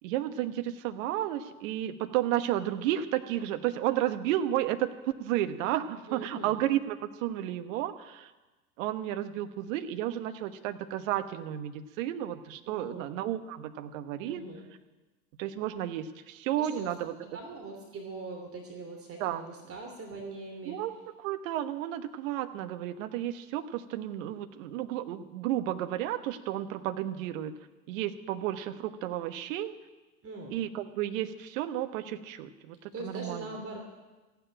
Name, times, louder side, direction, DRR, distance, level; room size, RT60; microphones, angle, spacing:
voice 1, 0.0-8.3 8.8-14.4 15.4-17.1 19.2-19.4 20.6-20.9 21.2-27.5 27.9-29.7 30.5-33.5, right 12 dB, 60° right, 9 dB, 1.3 m, -32 dB
voice 2, 6.1-6.6 12.7-13.1 14.2-14.7 16.6-20.8 30.2-30.6 32.9-33.8, right 3 dB, 30° right, 2 dB, 3.0 m, -42 dB
15.0 x 9.4 x 9.0 m, 1.2 s
hypercardioid pair, 90°, 45 cm